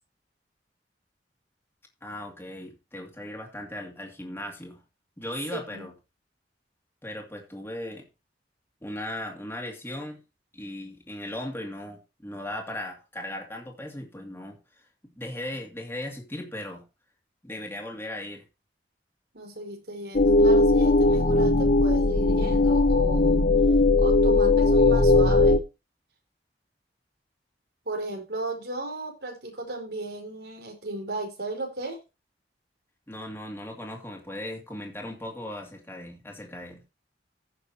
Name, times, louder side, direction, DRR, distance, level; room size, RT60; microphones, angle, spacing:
voice 1, 2.0-4.8 5.2-5.9 7.0-8.1 8.8-10.2 10.5-16.8 17.4-18.4 33.1-36.8, left 1 dB, 15° left, 1 dB, 2.4 m, -37 dB
voice 2, 5.5-5.9 19.3-23.4 24.0-25.6 27.8-32.0, right 2 dB, 65° right, 2 dB, 4.9 m, -35 dB
sound 1, 20.2-25.6, left 2 dB, 45° left, 0.9 m, -19 dB
15.5 x 6.5 x 2.9 m, 0.27 s
head